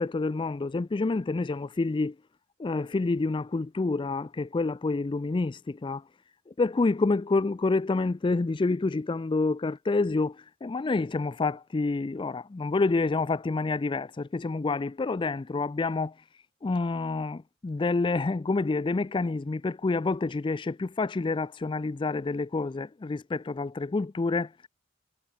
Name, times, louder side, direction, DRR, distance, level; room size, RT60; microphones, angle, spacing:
voice 1, 0.0-2.2 2.6-6.0 6.5-16.1 16.6-24.7, left 3 dB, 25° left, 0.4 m, -28 dB
head